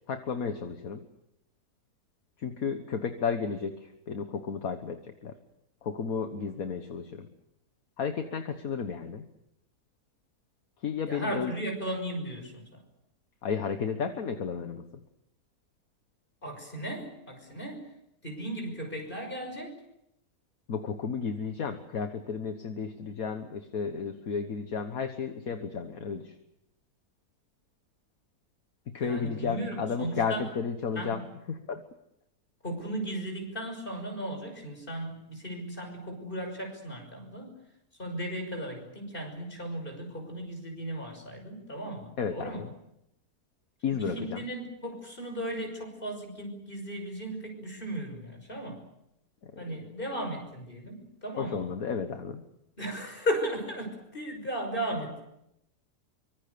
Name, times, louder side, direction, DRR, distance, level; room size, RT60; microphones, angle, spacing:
voice 1, 0.1-1.0 2.4-5.3 5.8-7.3 8.0-9.3 10.8-11.5 13.4-14.9 20.7-26.4 28.9-31.2 31.5-31.8 42.2-42.7 43.8-44.4 49.4-49.9 51.4-52.4, left 6 dB, 65° left, 7 dB, 1.8 m, -33 dB
voice 2, 11.1-12.6 16.4-17.8 18.2-19.8 29.0-30.4 31.0-31.2 32.6-37.6 38.0-42.7 43.9-48.8 49.6-51.7 52.8-55.2, right 1 dB, 35° left, 4 dB, 6.2 m, -36 dB
25.0 x 24.5 x 6.9 m, 0.82 s
omnidirectional pair, 1.6 m